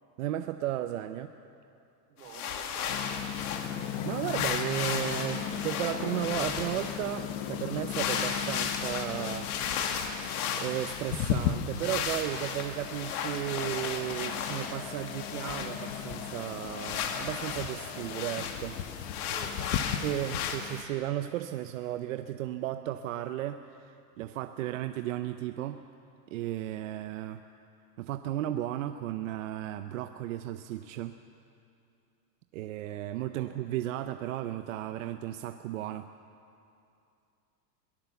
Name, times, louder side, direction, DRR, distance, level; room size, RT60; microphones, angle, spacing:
voice 1, 0.2-1.3 3.8-18.8 20.0-25.8 26.3-27.4 28.0-31.2 32.5-36.1, right 13 dB, 55° right, 9 dB, 0.7 m, -35 dB
voice 2, 2.1-3.6 19.3-19.7 33.3-33.6, right 7 dB, 75° right, 2 dB, 4.5 m, -51 dB
sound 1, 2.2-3.9 4.2-7.0 7.9-11.5 11.7-14.8 15.0-18.6 19.0-20.6, left 7 dB, 65° left, 2.2 m, -35 dB
sound 2, 2.9-20.8, left 10 dB, 40° left, 1.2 m, -37 dB
sound 3, 12.8-18.9, left 6 dB, 20° left, 1.4 m, -47 dB
23.0 x 18.0 x 7.0 m, 2.6 s
supercardioid pair, 170°, 48 cm